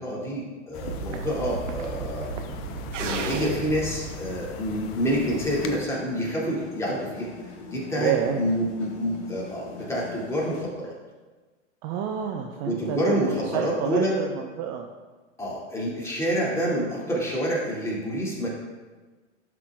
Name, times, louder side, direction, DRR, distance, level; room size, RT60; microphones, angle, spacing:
voice 1, 0.0-2.4 3.0-7.3 7.7-10.9 12.7-14.1 15.4-18.5, equal, 10° left, -6 dB, 2.5 m, -28 dB
sound 1, 0.7-5.8, left 6 dB, 35° left, 0.7 m, -38 dB
sound 2, 0.8-5.0, right 5 dB, 80° right, 0.8 m, -35 dB
sound 3, 5.0-10.7, left 4 dB, 60° left, 2.2 m, -42 dB
voice 2, 8.0-8.5 11.8-14.9, right 9 dB, 40° right, 3 dB, 0.6 m, -29 dB
12.0 x 5.9 x 2.4 m, 1.3 s
hypercardioid pair, 105°, 37 cm